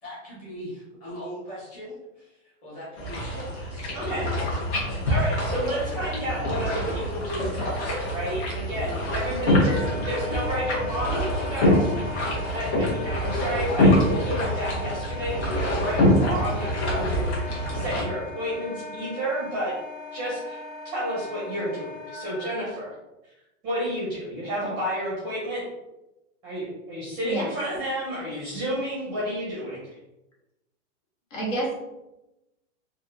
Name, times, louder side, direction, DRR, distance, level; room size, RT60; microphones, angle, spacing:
voice 1, 0.0-4.0 5.7-6.4 10.2-10.3 10.7-11.3 13.4-13.5, equal, 20° left, -7 dB, 1.1 m, -40 dB
sound 1, 3.0-18.0, left 1 dB, 60° left, 1.1 m, -25 dB
voice 2, 3.9-4.6 5.1-11.9 12.5-17.3 17.7-19.7 20.1-20.6 20.8-22.9 23.6-25.6 26.4-29.8, equal, 10° right, -6 dB, 0.5 m, -31 dB
Wind instrument woodwind instrument, 9.6-22.7, left 3 dB, 5° left, 0.8 m, -39 dB
voice 3, 31.3-31.7, right 2 dB, 80° left, -3 dB, 1.5 m, -28 dB
3.4 x 2.4 x 2.5 m, 0.97 s
supercardioid pair, 175°, 38 cm